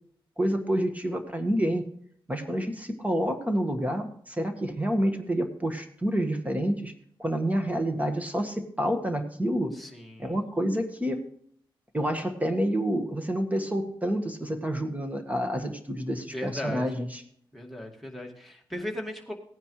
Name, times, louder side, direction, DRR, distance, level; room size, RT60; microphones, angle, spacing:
voice 1, 0.4-1.8 2.3-6.9 7.2-9.7 10.2-11.2 11.9-17.2, equal, 15° right, 6 dB, 1.7 m, -28 dB
voice 2, 9.7-10.4 16.3-17.0 17.5-19.3, left 1 dB, ahead, 2 dB, 2.3 m, -37 dB
17.5 x 9.8 x 3.3 m, 0.65 s
cardioid pair, 80°, 9 cm